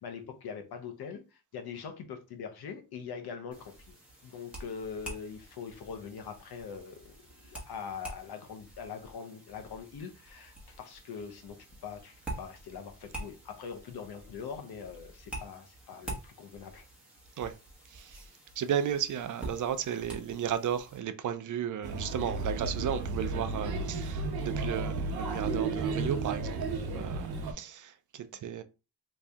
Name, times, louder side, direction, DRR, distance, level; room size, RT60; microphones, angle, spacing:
voice 1, 0.0-3.8 4.2-16.9, left 6 dB, 85° left, 0.9 m, -43 dB
sound 1, 3.5-21.0, right 1 dB, 5° right, 1.1 m, -47 dB
voice 2, 17.9-18.3 18.6-26.6 26.9-28.6, right 9 dB, 55° right, 0.4 m, -34 dB
Male speech man speaking / Child speech kid speaking / Chatter, 21.8-27.5, right 3 dB, 85° right, 0.9 m, -33 dB
3.1 x 2.7 x 3.4 m
wide cardioid pair, 155°, 37 cm